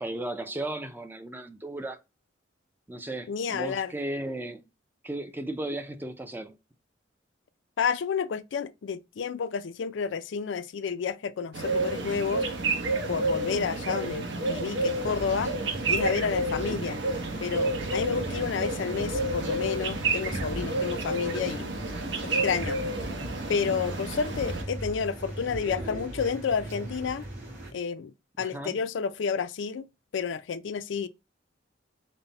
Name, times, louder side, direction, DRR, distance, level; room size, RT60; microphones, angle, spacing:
voice 1, 0.0-2.0 2.9-4.6 5.0-6.6 16.7-16.9 28.4-28.8, right 1 dB, 10° right, 0.4 m, -35 dB
voice 2, 3.3-3.9 7.8-12.5 13.1-15.5 15.9-17.0 17.4-21.7 22.2-22.8 23.5-27.3 27.7-29.9 30.1-31.1, left 6 dB, 75° left, 0.4 m, -30 dB
sound 1, 11.5-24.6, right 2 dB, 70° right, 1.0 m, -30 dB
sound 2, 14.9-27.7, right 1 dB, 45° right, 2.2 m, -39 dB
5.4 x 2.1 x 3.9 m
head